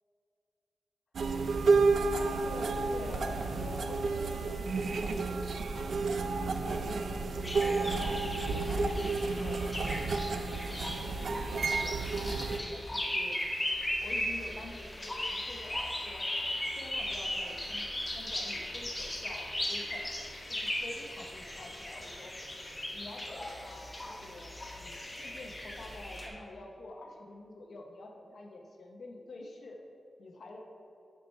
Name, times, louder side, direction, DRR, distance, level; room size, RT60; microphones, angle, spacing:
sound 1, 1.1-12.6, right 3 dB, 75° right, 0.5 m, -31 dB
voice 1, 1.2-1.7 2.1-6.1 6.6-9.6 10.1-10.5 10.9-13.4 14.0-16.3 16.7-20.1 20.5-22.3 22.9-29.8 30.2-30.6, left 2 dB, 60° left, 1 dB, 0.7 m, -47 dB
sound 2, 7.4-26.3, left 1 dB, 15° left, 1.0 m, -37 dB
sound 3, 15.2-25.2 25.5-25.6, left 3 dB, 80° left, 1.5 m, -52 dB
8.4 x 4.5 x 5.4 m, 2.7 s
wide cardioid pair, 170°, 0 cm